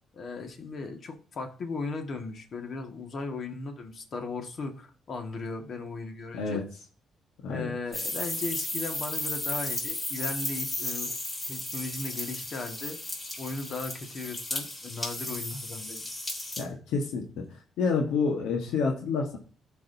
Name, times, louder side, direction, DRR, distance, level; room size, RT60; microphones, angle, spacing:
voice 1, 0.1-6.6 7.5-11.1 11.5-13.0 13.4-16.0, left 3 dB, 55° left, 4 dB, 1.7 m, -37 dB
sound 1, 7.9-16.6, left 1 dB, 25° left, 3.7 m, -34 dB
voice 2, 16.6-17.4 17.8-19.4, left 5 dB, 85° left, 2 dB, 1.4 m, -28 dB
15.0 x 5.0 x 2.7 m, 0.43 s
cardioid pair, 90°, 0 cm